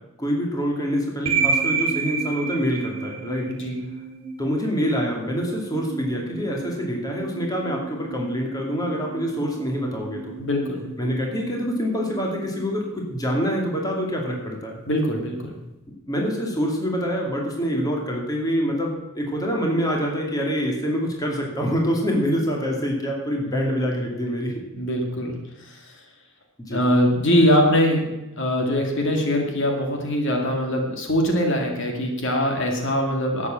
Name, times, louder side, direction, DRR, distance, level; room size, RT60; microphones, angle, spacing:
voice 1, 0.2-3.5 4.4-10.3 11.0-14.8 16.1-24.5 26.6-26.8, equal, 15° left, 0 dB, 2.4 m, -26 dB
sound 1, 1.3-13.3, right 5 dB, 30° right, 3.0 m, -31 dB
voice 2, 3.5-3.8 10.4-10.8 14.9-15.6 23.4-23.8 24.8-25.4 25.6-25.8 26.7-33.5, equal, 60° left, 2 dB, 2.3 m, -22 dB
12.0 x 8.5 x 7.6 m, 0.99 s
head